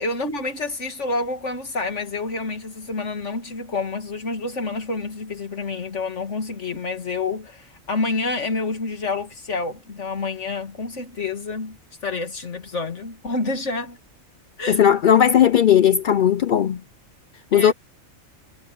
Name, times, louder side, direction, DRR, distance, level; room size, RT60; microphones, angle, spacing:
voice 1, 0.0-14.0 14.6-14.8 17.5-17.7, left 3 dB, 60° left, 2.7 m, -28 dB
voice 2, 14.7-16.8 17.5-17.7, left 9 dB, 75° left, 0.4 m, -16 dB
omnidirectional pair, 1.4 m